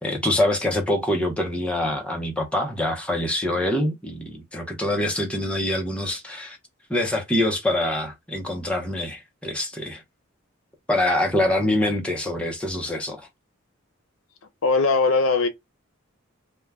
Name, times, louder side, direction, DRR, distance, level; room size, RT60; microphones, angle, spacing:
voice 1, 0.0-6.6 6.9-10.0 10.9-13.3, left 1 dB, 5° left, 0.6 m, -25 dB
voice 2, 14.6-15.5, left 4 dB, 85° left, 0.6 m, -19 dB
2.1 x 2.1 x 3.4 m
head